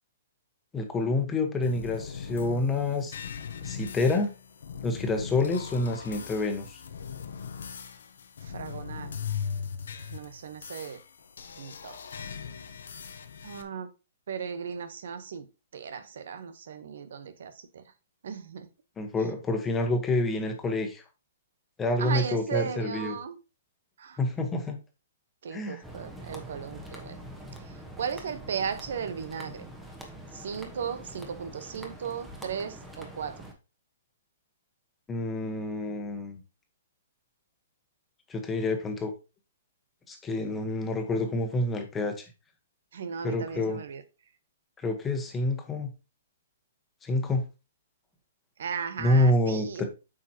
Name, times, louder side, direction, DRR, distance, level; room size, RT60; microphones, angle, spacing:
voice 1, 0.7-3.2 3.6-4.3 4.8-6.8 19.0-21.0 21.8-23.2 24.2-24.8 25.5-25.8 35.1-36.4 38.3-39.1 40.1-42.3 43.2-43.8 44.8-45.9 47.0-47.4 49.0-49.9, left 2 dB, 15° left, 1.4 m, -28 dB
sound 1, 1.6-13.6, left 7 dB, 75° left, 0.9 m, -39 dB
voice 2, 8.4-9.1 10.0-11.0 11.6-12.0 13.4-13.9 14.3-15.5 15.7-17.8 18.2-18.7 22.0-23.4 24.0-24.2 25.4-27.2 27.6-29.6 30.3-33.4 42.9-44.0 48.6-49.9, right 7 dB, 70° right, 1.1 m, -36 dB
sound 2, 25.8-33.5, right 1 dB, 5° right, 1.3 m, -44 dB
8.4 x 5.1 x 2.9 m
hypercardioid pair, 145°, 0 cm